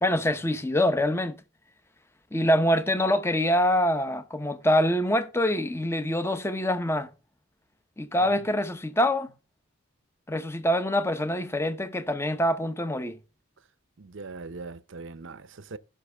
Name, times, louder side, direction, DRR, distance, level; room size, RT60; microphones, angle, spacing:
voice 1, 0.0-1.3 2.3-7.1 8.0-9.3 10.3-13.2, left 1 dB, 10° left, 0.8 m, -25 dB
voice 2, 14.0-15.8, right 3 dB, 55° right, 0.6 m, -41 dB
17.0 x 5.9 x 3.4 m
head